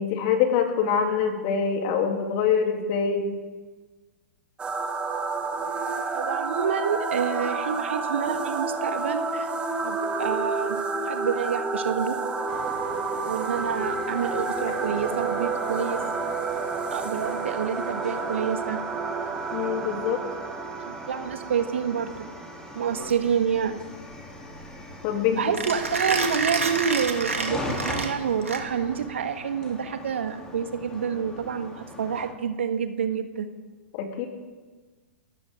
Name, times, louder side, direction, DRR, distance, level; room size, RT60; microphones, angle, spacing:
voice 1, 0.0-3.2 19.5-20.2 25.0-25.4 33.9-34.3, left 7 dB, 40° left, 3 dB, 3.0 m, -24 dB
sound 1, 4.6-23.0, right 4 dB, 15° right, 1.8 m, -30 dB
voice 2, 6.1-9.5 9.8-12.2 13.3-16.0 16.9-18.8 20.9-22.1 22.7-23.8 25.4-33.5, right 7 dB, 65° right, 8 dB, 1.4 m, -28 dB
sound 2, 12.5-32.3, left 1 dB, 10° left, 3.0 m, -41 dB
Mechanisms, 22.9-29.0, right 3 dB, 80° right, 2.3 m, -30 dB
28.5 x 13.5 x 3.7 m, 1.3 s
figure-of-eight pair, 105°, 7 cm